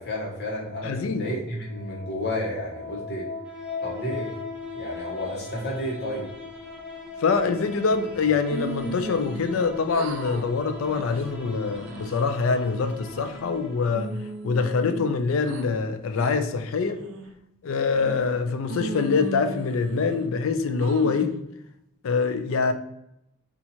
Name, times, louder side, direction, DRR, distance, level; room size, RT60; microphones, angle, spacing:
voice 1, 0.0-3.3 3.8-4.3 4.7-6.3, equal, 55° left, 1.0 m, -31 dB
voice 2, 0.8-1.3 7.2-14.2 14.4-17.0 17.6-21.4 22.0-22.7, left 4 dB, 90° left, 0.4 m, -24 dB
sound 1, 1.5-14.5, left 4 dB, 5° right, 0.7 m, -40 dB
sound 2, 8.5-9.6 9.9-10.4 10.8-11.2 11.7-12.3 12.8-13.5 13.9-15.6 16.2-16.3 16.9-17.3 17.9-18.4 18.7-20.3 20.8-21.4, right 3 dB, 80° right, 0.4 m, -36 dB
2.9 x 2.4 x 4.1 m
head